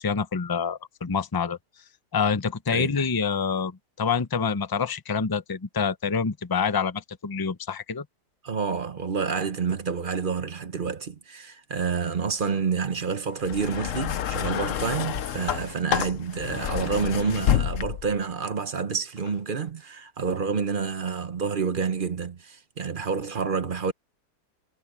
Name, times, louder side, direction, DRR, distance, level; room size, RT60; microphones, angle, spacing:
voice 1, 0.0-1.6 2.1-8.0, left 6 dB, 25° left, 0.4 m, -27 dB
voice 2, 8.4-23.9, right 5 dB, 40° right, 0.9 m, -28 dB
sound 1, 13.4-18.2 19.2-19.3, left 10 dB, 60° left, 1.0 m, -28 dB
omnidirectional pair, 1.7 m